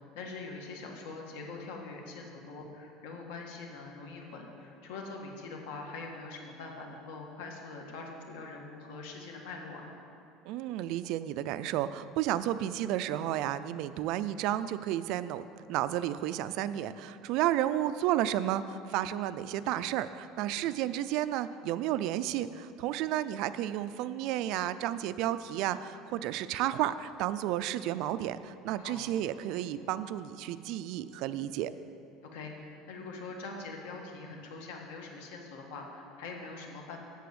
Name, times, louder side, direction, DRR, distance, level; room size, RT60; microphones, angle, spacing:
voice 1, 0.1-9.9 20.5-20.7 28.8-29.0 32.3-37.0, left 3 dB, 85° left, 1 dB, 1.7 m, -43 dB
voice 2, 10.4-15.4 15.7-31.7, right 12 dB, 55° right, 13 dB, 0.3 m, -32 dB
8.2 x 6.8 x 7.9 m, 2.7 s
cardioid pair, 160°, 0 cm